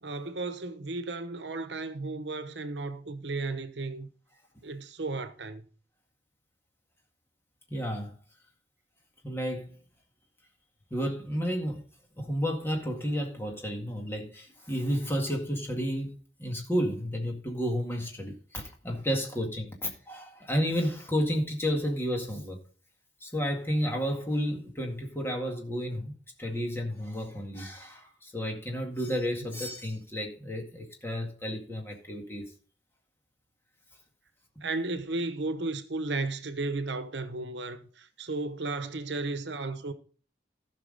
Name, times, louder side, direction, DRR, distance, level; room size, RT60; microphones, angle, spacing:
voice 1, 0.0-4.1 4.6-5.7 34.6-39.9, right 3 dB, 80° right, 1.0 m, -34 dB
voice 2, 7.7-8.2 9.2-9.8 10.9-11.8 12.2-22.6 23.2-32.5, equal, 15° left, 1.9 m, -32 dB
15.0 x 5.9 x 4.0 m
head